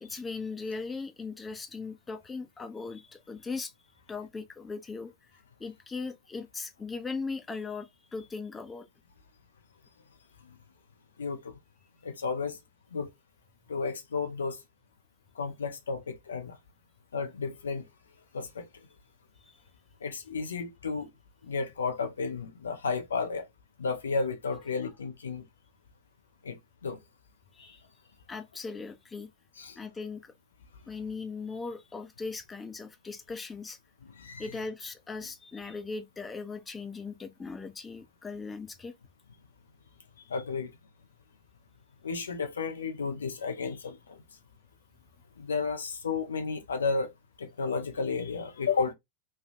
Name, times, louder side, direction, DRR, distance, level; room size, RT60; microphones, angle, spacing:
voice 1, 0.0-3.7 4.1-5.3 5.6-8.9 19.4-19.6 27.5-27.8 28.3-29.3 29.8-30.3 30.9-33.8 34.4-38.9, left 4 dB, 15° left, 0.6 m, -39 dB
voice 2, 11.2-11.6 12.0-12.6 12.9-13.1 13.7-14.6 15.4-16.6 17.1-17.8 18.3-18.7 20.0-21.1 21.5-23.5 23.8-25.4 26.4-26.6 26.8-27.0 27.7-27.8 29.6-29.8 34.0-34.5 40.3-40.7 42.0-44.2 45.4-47.1 47.4-48.9, left 4 dB, 70° left, 0.5 m, -32 dB
3.2 x 2.3 x 2.6 m
figure-of-eight pair, 90°, 0 cm